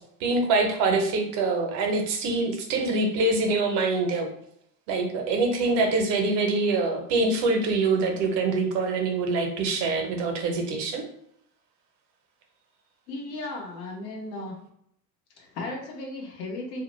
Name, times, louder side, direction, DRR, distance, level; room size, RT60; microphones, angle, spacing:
voice 1, 0.2-4.3 4.9-11.0, right 3 dB, 60° right, 3 dB, 0.8 m, -25 dB
voice 2, 13.1-14.6 15.4-16.8, left 2 dB, 80° left, 0 dB, 0.9 m, -35 dB
2.3 x 2.1 x 3.0 m, 0.71 s
hypercardioid pair, 80°, 48 cm